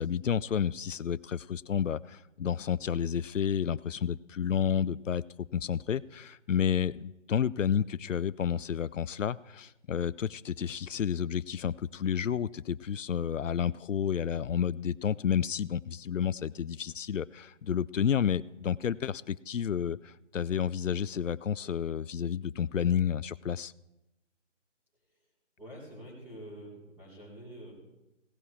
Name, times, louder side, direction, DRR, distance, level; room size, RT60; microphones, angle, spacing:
voice 1, 0.0-5.2 5.5-23.7, left 8 dB, 85° left, 19 dB, 0.5 m, -30 dB
voice 2, 25.6-27.7, right 1 dB, 5° right, -7 dB, 3.8 m, -47 dB
17.5 x 11.0 x 3.3 m, 0.95 s
figure-of-eight pair, 150°, 37 cm